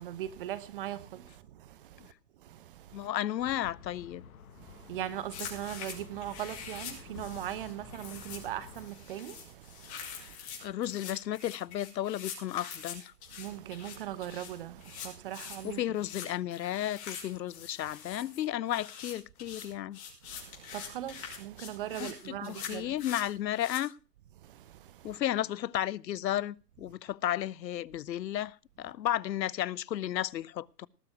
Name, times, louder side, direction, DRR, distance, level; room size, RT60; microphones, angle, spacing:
voice 1, 0.0-2.1 2.4-3.1 4.6-10.4 13.4-15.8 20.3-22.9 24.4-25.2, right 12 dB, 35° right, 0.9 m, -40 dB
voice 2, 2.9-4.2 10.2-10.3 10.6-13.1 15.6-20.0 22.0-23.9 25.0-30.9, left 12 dB, 85° left, 0.6 m, -33 dB
sound 1, 3.4-8.9, left 7 dB, 55° left, 1.7 m, -51 dB
sound 2, 5.3-23.8, left 7 dB, 40° left, 5.6 m, -45 dB
19.0 x 6.9 x 5.9 m
hypercardioid pair, 150°, 50 cm